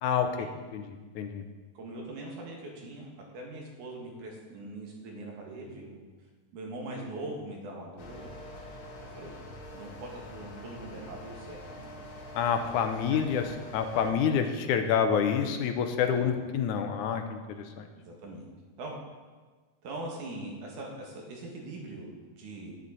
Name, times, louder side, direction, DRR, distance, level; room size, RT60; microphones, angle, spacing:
voice 1, 0.0-0.5 0.7-1.4 12.3-13.4 13.7-17.8, left 7 dB, 85° left, 6 dB, 2.3 m, -28 dB
voice 2, 1.7-6.0 6.5-8.3 9.2-9.4 9.7-11.9 14.1-14.5 16.1-16.3 18.0-18.5 18.8-19.0 19.8-22.7, right 2 dB, 80° right, -1 dB, 3.3 m, -42 dB
sound 1, 8.0-14.1, left 1 dB, 55° left, 1.7 m, -45 dB
11.0 x 10.5 x 4.1 m, 1.4 s
omnidirectional pair, 3.5 m